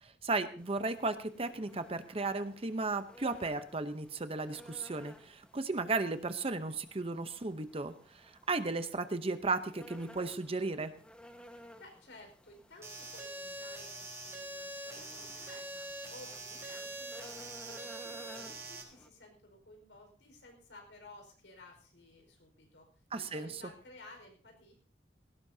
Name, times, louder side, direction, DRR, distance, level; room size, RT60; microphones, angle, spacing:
voice 1, 0.0-10.9 23.1-23.5, right 3 dB, 35° right, 10 dB, 0.8 m, -35 dB
sound 1, 0.6-19.1, equal, 5° left, 1.3 m, -56 dB
voice 2, 11.4-22.9 23.1-24.7, left 2 dB, 90° left, 3 dB, 4.9 m, -55 dB
sound 2, 12.8-18.8, right 2 dB, 15° right, 4.2 m, -44 dB
17.5 x 17.0 x 2.8 m, 0.43 s
head